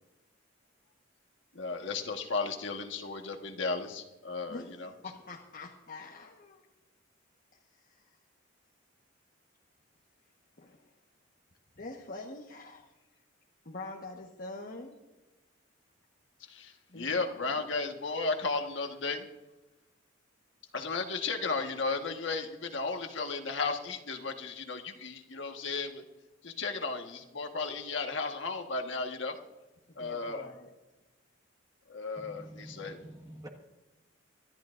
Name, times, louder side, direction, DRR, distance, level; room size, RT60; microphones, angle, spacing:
voice 1, 1.5-4.9 16.5-19.3 20.7-26.0 26.4-29.4 29.9-30.5 31.9-33.1, left 4 dB, 65° left, 4 dB, 1.5 m, -34 dB
voice 2, 5.0-6.6 10.6-10.8 11.8-12.9 13.6-15.0 16.9-17.6 29.9-30.7, left 2 dB, 45° left, -1 dB, 1.3 m, -44 dB
voice 3, 32.2-33.5, right 1 dB, 20° right, 3 dB, 1.5 m, -48 dB
25.0 x 12.0 x 2.6 m, 1.1 s
head